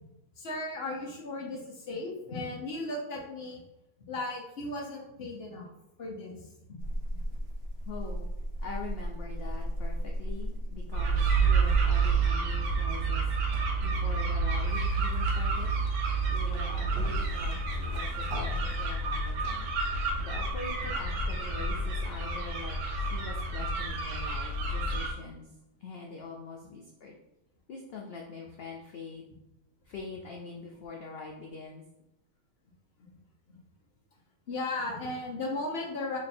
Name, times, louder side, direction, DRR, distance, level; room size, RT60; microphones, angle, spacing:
voice 1, 0.4-3.6 4.1-5.7 6.0-6.4 6.7-6.8 33.5-33.6 34.5-36.2, left 2 dB, 50° left, -2 dB, 0.9 m, -36 dB
sound 1, 6.8-12.3, equal, 65° right, 0.6 m, -35 dB
voice 2, 7.9-8.3 8.6-13.2 13.5-15.7 16.3-19.7 20.2-25.5 25.8-27.1 27.7-29.2 29.8-31.8, left 4 dB, 80° left, 0 dB, 0.5 m, -44 dB
sound 2, 10.9-25.1, right 3 dB, 85° right, 1.2 m, -29 dB
3.2 x 2.5 x 4.2 m, 0.92 s
omnidirectional pair, 1.6 m